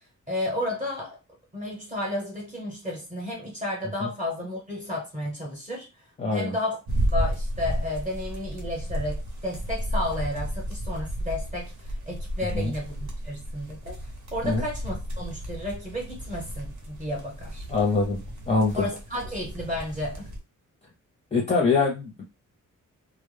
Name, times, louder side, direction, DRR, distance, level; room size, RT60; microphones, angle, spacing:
voice 1, 0.3-1.2 1.5-5.9 6.3-6.8 7.1-14.0 14.3-17.6 18.8-20.3, left 1 dB, 25° right, 0.8 m, -32 dB
voice 2, 6.2-6.5 12.5-12.7 14.4-14.6 17.7-18.2 18.5-18.9 21.3-22.2, left 4 dB, 20° left, 0.5 m, -24 dB
sound 1, 6.9-20.4, equal, 60° right, 0.8 m, -33 dB
2.1 x 2.0 x 3.2 m
wide cardioid pair, 170°, 32 cm